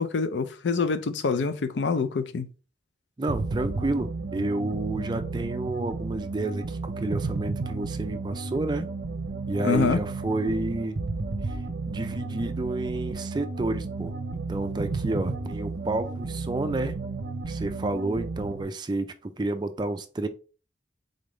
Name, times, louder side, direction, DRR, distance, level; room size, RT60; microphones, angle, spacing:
voice 1, 0.0-2.5 9.6-10.0, left 4 dB, 75° left, 0.5 m, -26 dB
voice 2, 3.2-8.9 9.5-11.0 11.4-11.6 11.9-17.0 17.5-20.3, right 2 dB, 25° right, 0.4 m, -30 dB
sound 1, 3.3-18.6, right 3 dB, 65° right, 0.6 m, -33 dB
3.8 x 3.3 x 3.7 m
head